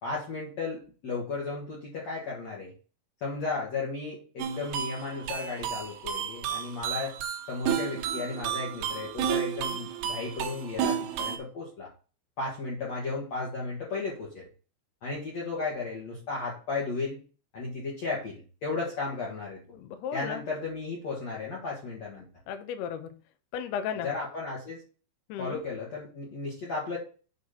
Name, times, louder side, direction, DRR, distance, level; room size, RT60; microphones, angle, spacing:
voice 1, 0.0-2.7 3.2-7.1 7.5-11.9 12.4-14.5 15.0-17.2 17.5-19.6 20.1-22.2 24.0-24.8 25.4-27.0, left 3 dB, 65° left, -5 dB, 1.7 m, -34 dB
sound 1, 4.4-11.4, right 9 dB, 80° right, 2.4 m, -32 dB
voice 2, 19.7-20.4 22.5-23.1 23.5-24.1 25.3-25.6, left 8 dB, 90° left, 7 dB, 2.2 m, -34 dB
9.0 x 4.0 x 4.3 m, 0.37 s
omnidirectional pair, 6.0 m